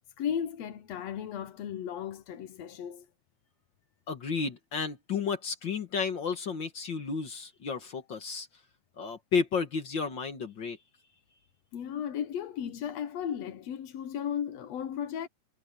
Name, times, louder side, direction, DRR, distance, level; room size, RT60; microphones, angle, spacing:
voice 1, 0.2-3.1 11.7-15.3, left 9 dB, 60° left, 2.0 m, -35 dB
voice 2, 4.1-8.5 9.0-10.8, left 5 dB, 45° left, 1.7 m, -32 dB
omnidirectional pair, 3.8 m